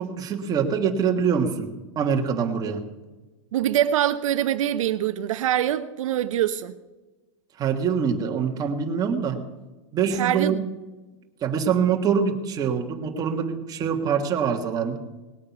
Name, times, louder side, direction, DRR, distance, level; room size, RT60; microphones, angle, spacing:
voice 1, 0.0-2.9 7.6-9.4 9.9-10.6 11.4-15.0, right 6 dB, 20° right, 1.5 m, -24 dB
voice 2, 3.5-6.7 10.1-10.7, right 11 dB, 75° right, 0.7 m, -24 dB
19.0 x 8.7 x 5.9 m
supercardioid pair, 150°, 17 cm